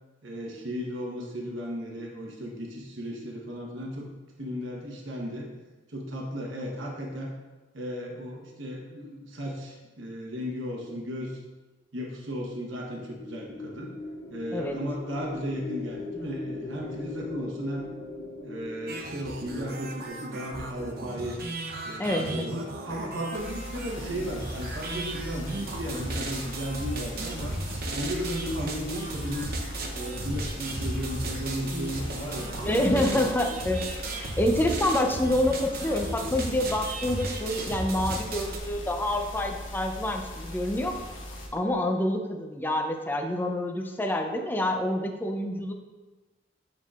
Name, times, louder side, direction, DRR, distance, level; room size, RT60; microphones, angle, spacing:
voice 1, 0.2-4.1 4.4-5.5 5.9-7.3 7.7-11.4 11.9-13.9 14.3-17.9 18.4-21.4 21.8-27.6 27.9-29.6 29.9-33.5, equal, 85° right, -1 dB, 1.1 m, -35 dB
sound 1, 13.2-21.4, left 2 dB, 70° left, 0.7 m, -40 dB
sound 2, 18.9-38.6, right 2 dB, 50° right, 0.8 m, -35 dB
voice 2, 22.0-22.5 32.6-33.8 34.1-41.0 41.5-45.7, left 1 dB, 10° left, 4 dB, 0.5 m, -27 dB
sound 3, 23.3-41.5, left 1 dB, 85° left, 1.1 m, -40 dB
7.6 x 5.5 x 2.4 m, 1.2 s
head